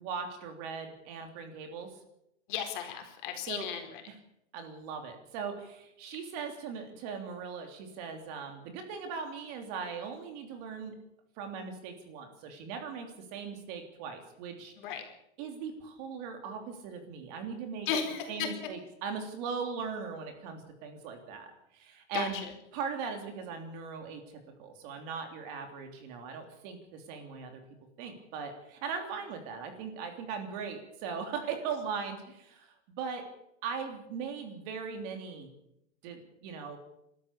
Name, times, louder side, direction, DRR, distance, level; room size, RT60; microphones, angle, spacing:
voice 1, 0.0-2.0 3.5-3.7 4.1-4.2 4.5-11.0 11.4-14.7 15.4-17.9 18.3-22.4 22.7-27.6 28.0-33.2 33.6-35.5 36.0-36.8, right 6 dB, 35° right, 5 dB, 3.2 m, -39 dB
voice 2, 2.5-3.9 14.8-15.0 17.9-18.5 22.1-22.4, left 7 dB, 45° left, 4 dB, 4.2 m, -34 dB
29.5 x 13.0 x 6.9 m, 0.80 s
supercardioid pair, 175°, 35 cm